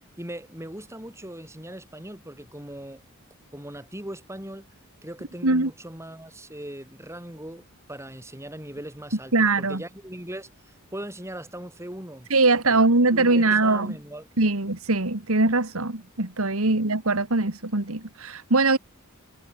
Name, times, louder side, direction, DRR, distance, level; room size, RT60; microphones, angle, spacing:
voice 1, 0.2-3.0 3.5-4.7 5.0-12.3 12.7-14.3 16.6-16.8, right 1 dB, 15° right, 6.9 m, -39 dB
voice 2, 9.3-9.8 12.3-14.0 14.4-18.8, right 3 dB, 75° right, 2.2 m, -22 dB
head